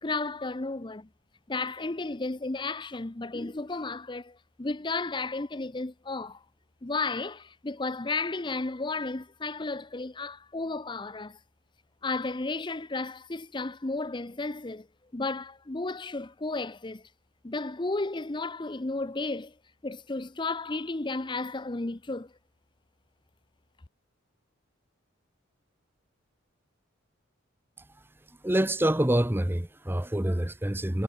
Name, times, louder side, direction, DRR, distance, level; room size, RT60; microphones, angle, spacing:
voice 1, 0.0-1.1 1.5-6.4 6.8-11.4 12.0-14.9 15.1-17.0 17.4-19.5 19.8-22.3, left 3 dB, 25° left, 0.7 m, -33 dB
voice 2, 28.4-31.0, right 1 dB, 10° right, 0.9 m, -26 dB
head